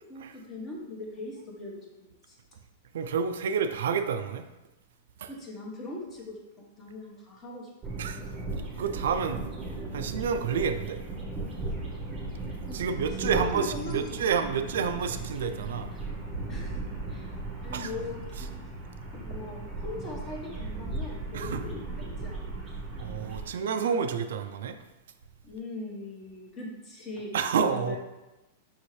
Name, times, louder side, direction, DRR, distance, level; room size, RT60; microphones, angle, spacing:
voice 1, 0.1-2.4 5.3-7.7 12.6-12.8 13.2-14.1 14.4-14.5 14.8-14.9 16.5-16.8 17.1-17.3 17.6-18.5 19.1-22.6 25.4-27.4 27.7-28.0, left 2 dB, 20° left, -2 dB, 0.9 m, -40 dB
voice 2, 2.9-4.4 5.2-5.3 8.0-8.2 8.8-9.4 9.9-11.0 12.7-15.9 17.7-17.9 21.3-21.6 23.0-24.8 27.3-28.0, right 6 dB, 80° right, 8 dB, 0.3 m, -29 dB
sound 1, 7.8-23.5, right 2 dB, 15° right, 0.8 m, -37 dB
5.6 x 2.7 x 3.1 m, 1.0 s
supercardioid pair, 155°, 0 cm